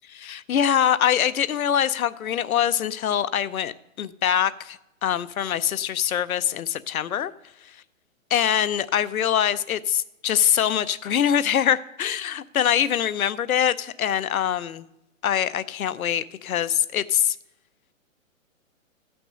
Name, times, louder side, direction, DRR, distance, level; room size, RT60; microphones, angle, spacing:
voice 1, 0.1-3.7 4.0-7.3 8.3-14.9 15.2-17.4, left 9 dB, 90° left, 16 dB, 0.7 m, -23 dB
14.0 x 6.0 x 5.2 m, 0.89 s
hypercardioid pair, 155°, 41 cm